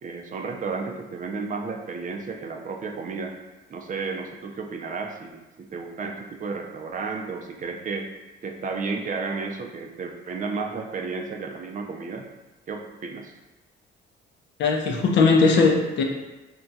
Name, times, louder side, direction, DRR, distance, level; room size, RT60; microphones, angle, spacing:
voice 1, 0.0-3.3 3.7-5.4 5.7-8.1 8.4-12.2 12.7-13.3, right 4 dB, 40° right, 3 dB, 0.4 m, -32 dB
voice 2, 14.6-16.0, left 4 dB, 65° left, 2 dB, 0.5 m, -19 dB
2.3 x 2.2 x 3.9 m, 1.1 s
cardioid pair, 90°, 20 cm